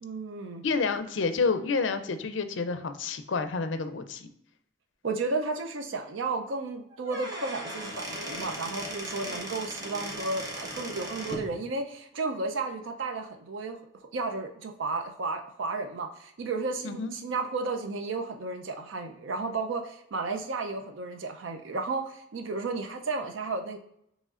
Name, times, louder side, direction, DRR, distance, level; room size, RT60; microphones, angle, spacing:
voice 1, 0.0-0.6 5.0-13.8 14.1-23.8, right 3 dB, 85° right, 5 dB, 0.5 m, -33 dB
voice 2, 0.6-4.3 16.8-17.1, left 4 dB, 70° left, 9 dB, 0.5 m, -29 dB
Squeak / Wood, 6.9-11.5, equal, 20° right, 0.8 m, -37 dB
6.3 x 3.1 x 2.4 m, 0.73 s
head